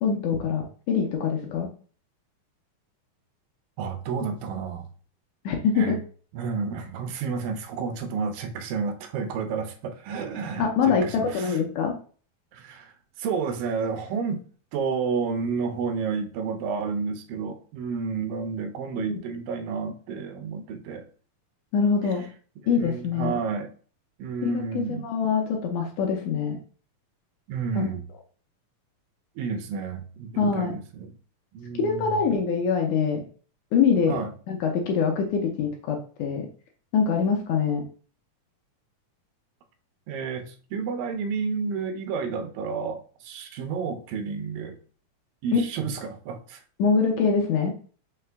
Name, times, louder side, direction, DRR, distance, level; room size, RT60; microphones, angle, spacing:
voice 1, 0.0-1.7 5.5-6.0 10.6-12.0 19.0-19.1 21.7-22.2 22.7-23.4 24.4-26.6 27.8-27.9 30.4-30.7 31.8-33.2 33.7-34.2 34.5-36.5 36.9-37.8 45.5-45.6 46.8-47.7, left 6 dB, 75° left, 2 dB, 1.9 m, -24 dB
voice 2, 3.8-4.9 5.8-5.9 6.3-11.6 12.5-14.4 14.7-21.0 22.1-22.3 22.8-23.7 24.2-25.1 27.5-28.0 29.4-31.2 31.5-32.3 34.1-34.3 40.1-44.8 45.4-46.6, right 5 dB, 85° right, 7 dB, 2.3 m, -31 dB
5.7 x 2.1 x 3.3 m, 0.41 s
omnidirectional pair, 3.8 m